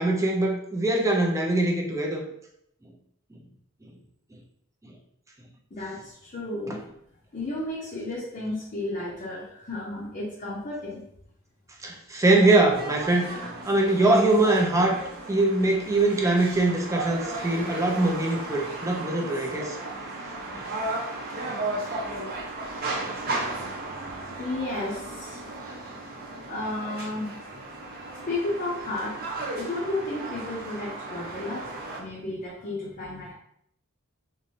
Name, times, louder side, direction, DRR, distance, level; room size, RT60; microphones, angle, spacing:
voice 1, 0.0-2.2 6.7-6.8 11.8-15.0 15.3-19.8 20.5-20.6 21.5-21.6, right 2 dB, 15° right, 0 dB, 0.4 m, -23 dB
voice 2, 5.7-6.8 7.3-11.0 24.4-25.5 26.5-27.4 28.3-29.2 29.6-31.7 32.0-33.3, left 2 dB, 40° left, -6 dB, 0.6 m, -33 dB
sound 1, 12.7-32.0, right 2 dB, 45° right, 0.7 m, -35 dB
3.0 x 2.5 x 2.7 m, 0.71 s
head